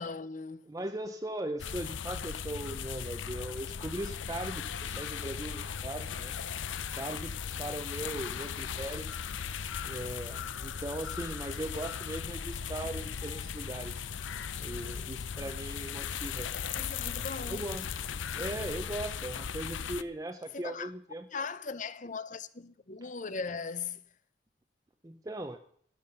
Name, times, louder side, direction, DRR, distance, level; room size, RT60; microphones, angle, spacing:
voice 1, 0.0-0.6 16.8-17.6 20.5-20.9 21.3-24.0, left 5 dB, 40° left, 0.7 m, -38 dB
voice 2, 0.7-6.4 6.9-9.1 9.8-14.0 14.6-16.5 17.2-17.9 18.4-21.3 25.0-25.6, right 1 dB, 20° right, 0.6 m, -39 dB
sound 1, 1.6-20.0, left 7 dB, 75° left, 0.6 m, -37 dB
12.5 x 11.0 x 6.6 m
head